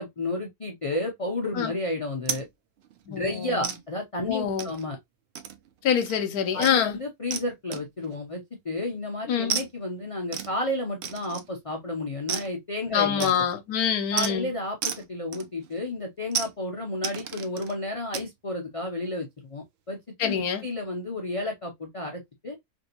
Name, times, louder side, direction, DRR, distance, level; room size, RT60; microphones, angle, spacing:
voice 1, 0.0-2.5 3.1-5.0 6.5-13.3 14.1-22.6, left 2 dB, 50° left, 0.4 m, -32 dB
sound 1, 2.3-2.5 2.8-3.0 3.6-3.8 4.6-4.9 5.3-5.7 6.0-6.2 6.6-6.8 7.3-7.5 7.7-8.1 9.5-9.7 10.3-10.5 11.0-11.6 12.3-12.5 13.2-13.6 14.2-14.3 14.8-15.1 15.3-15.8 16.3-16.5 17.0-17.7 18.1-18.3, right 8 dB, 70° right, 0.6 m, -32 dB
voice 2, 3.1-3.7 4.2-4.7 5.8-7.0 9.3-9.6 12.9-14.5 20.2-20.6, left 8 dB, 85° left, 1.1 m, -25 dB
3.4 x 2.6 x 2.7 m
omnidirectional pair, 1.6 m